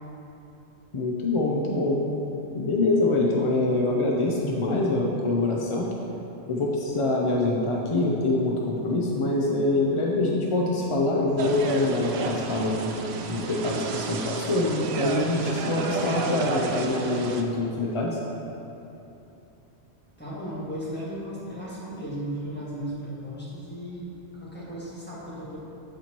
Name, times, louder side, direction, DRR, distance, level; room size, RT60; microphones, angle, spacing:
voice 1, 0.9-2.0 2.5-5.9 6.5-12.9 13.3-18.2, left 2 dB, 45° left, -2 dB, 0.4 m, -25 dB
sound 1, 11.4-17.4, right 4 dB, 65° right, 0.7 m, -31 dB
voice 2, 20.2-25.6, equal, 10° left, -9 dB, 1.6 m, -35 dB
12.5 x 4.4 x 3.0 m, 2.9 s
omnidirectional pair, 1.3 m